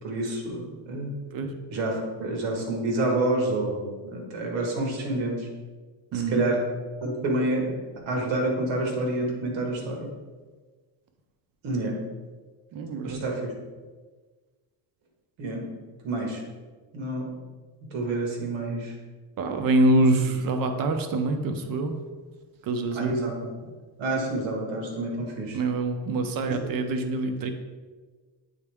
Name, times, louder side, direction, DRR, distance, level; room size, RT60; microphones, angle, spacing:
voice 1, 0.0-1.1 1.7-5.5 6.1-6.6 7.0-7.7 8.1-10.1 11.6-11.9 13.0-13.5 15.4-15.6 16.0-16.4 16.9-17.3 17.9-18.9 20.0-20.3 22.9-23.5 24.0-25.6 26.5-26.8, right 2 dB, 90° right, 0 dB, 1.7 m, -28 dB
voice 2, 6.1-6.5 12.7-13.2 19.4-22.0 22.6-23.2 25.5-27.5, right 2 dB, 50° right, 7 dB, 0.7 m, -25 dB
8.4 x 4.0 x 3.5 m, 1.4 s
cardioid pair, 160°, 44 cm